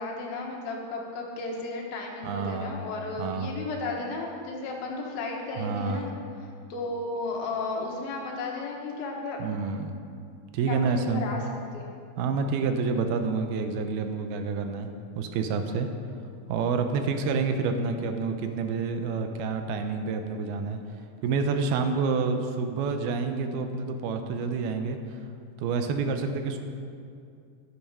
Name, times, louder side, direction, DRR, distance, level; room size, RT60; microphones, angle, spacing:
voice 1, 0.0-9.4 10.7-11.4 11.7-12.0, left 3 dB, 70° left, 0 dB, 3.0 m, -34 dB
voice 2, 2.2-2.7 3.2-3.5 5.6-6.1 9.4-9.9 10.5-11.3 12.2-14.9 15.1-15.9 16.5-20.8 21.2-25.0 25.6-26.6, right 4 dB, 80° right, 6 dB, 2.6 m, -28 dB
10.5 x 10.5 x 5.5 m, 2.4 s
omnidirectional pair, 4.6 m